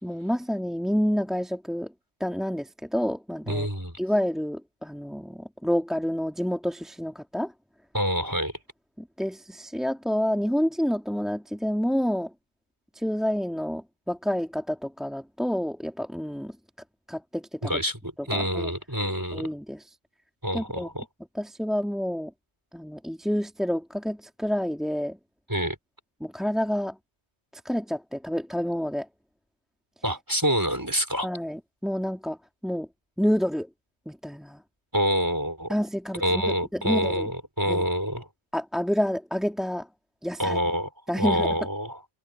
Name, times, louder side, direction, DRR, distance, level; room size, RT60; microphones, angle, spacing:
voice 1, 0.0-1.9 2.2-3.7 4.0-7.5 9.0-12.3 12.9-16.6 17.1-17.8 18.3-18.7 19.3-19.9 20.5-20.9 21.3-22.3 22.7-25.2 26.2-27.0 27.6-29.1 31.2-32.9 33.2-33.7 34.1-34.6 35.7-36.4 36.7-37.3 37.7-37.8 38.5-39.9 40.2-40.6 41.1-41.6, equal, ahead, 2.8 m, -28 dB
voice 2, 3.5-4.0 7.9-8.5 17.6-19.5 20.4-21.0 25.5-25.8 30.0-31.3 34.9-35.7 36.2-38.3 40.4-40.9 41.1-42.0, equal, 15° right, 5.1 m, -27 dB
omnidirectional pair, 1.2 m